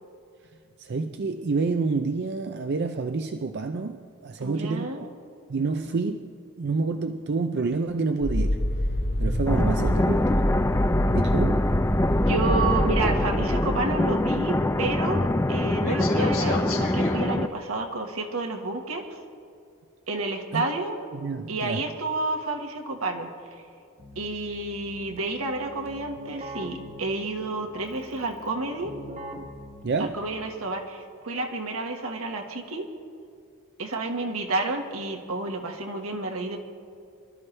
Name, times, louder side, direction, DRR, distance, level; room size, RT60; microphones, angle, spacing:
voice 1, 0.8-5.1 5.5-6.3 6.6-8.6 9.2-10.5 11.1-11.7 20.5-20.6 21.1-21.8 29.8-30.2, right 4 dB, 50° right, 7 dB, 0.5 m, -28 dB
voice 2, 4.4-5.1 9.5-10.2 12.2-19.2 20.1-21.0 21.5-23.3 24.1-29.0 30.0-32.9 33.8-36.6, right 3 dB, 80° right, 3 dB, 1.5 m, -30 dB
sound 1, 8.2-15.5 15.8-17.2, equal, 70° left, 3.7 m, -27 dB
sound 2, 9.5-17.5, left 1 dB, 15° left, 0.3 m, -25 dB
Keyboard (musical), 24.0-30.8, equal, 30° right, 1.1 m, -43 dB
24.5 x 12.5 x 3.3 m, 2.4 s
head